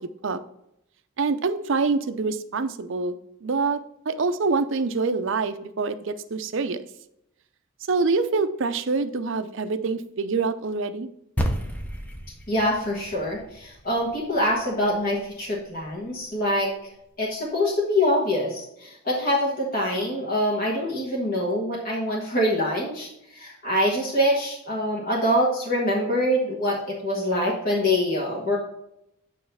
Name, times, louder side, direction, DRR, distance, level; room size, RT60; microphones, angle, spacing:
voice 1, 1.2-6.8 7.9-11.1, right 4 dB, 55° right, 10 dB, 0.5 m, -26 dB
sound 1, 11.4-15.9, equal, 5° left, 0.7 m, -33 dB
voice 2, 12.5-16.7 17.2-28.6, left 1 dB, 40° left, -4 dB, 1.5 m, -25 dB
9.2 x 3.2 x 5.6 m, 0.80 s
head